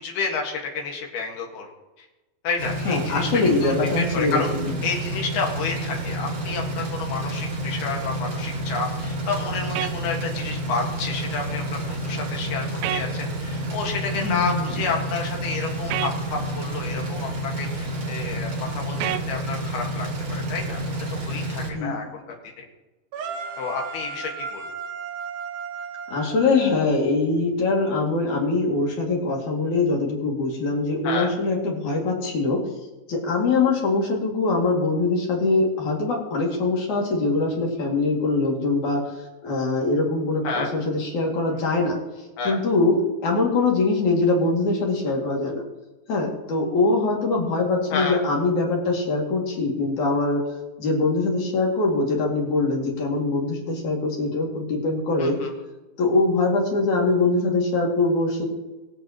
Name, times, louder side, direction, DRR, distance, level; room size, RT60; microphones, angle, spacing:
voice 1, 0.0-1.7 2.4-4.5 4.8-20.8 21.1-22.1 22.6-22.7 23.6-24.6 31.0-31.3 40.4-40.7 42.4-42.6 47.9-48.2 55.2-55.5, left 4 dB, 70° left, 0 dB, 3.5 m, -30 dB
sound 1, 2.6-21.7, right 1 dB, 40° right, 2.3 m, -29 dB
voice 2, 2.8-4.7 14.1-14.7 21.7-22.1 26.1-32.6 33.1-39.0 39.4-42.0 42.4-45.6 46.1-50.4 50.8-55.4 56.0-58.5, left 3 dB, 50° left, -1 dB, 3.4 m, -23 dB
sound 2, 9.8-9.9 12.8-13.1 15.9-16.1 19.0-19.3, right 13 dB, 85° right, 2.2 m, -26 dB
sound 3, 23.1-27.2, right 5 dB, 65° right, 2.1 m, -35 dB
22.0 x 8.3 x 3.0 m, 1.1 s
omnidirectional pair, 4.9 m